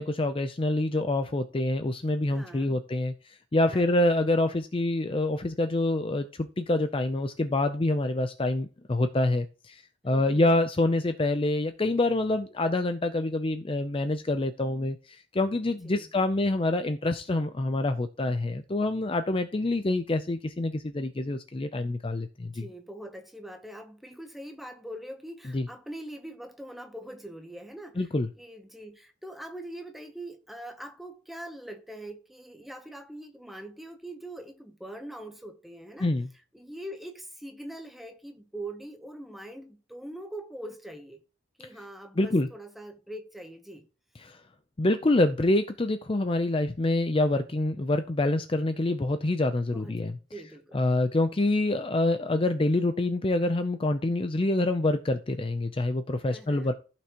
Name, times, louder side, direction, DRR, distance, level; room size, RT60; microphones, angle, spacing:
voice 1, 0.0-22.6 25.5-25.7 28.0-28.3 36.0-36.3 42.2-42.5 44.2-44.4 44.8-50.1 50.7-56.7, left 2 dB, 25° left, 0.5 m, -26 dB
voice 2, 2.3-2.8 3.7-3.9 10.0-10.5 15.8-16.1 22.5-28.1 28.4-36.1 36.5-41.2 41.6-43.9 49.7-50.8 56.2-56.7, right 1 dB, ahead, 0.9 m, -43 dB
14.5 x 5.9 x 3.0 m
head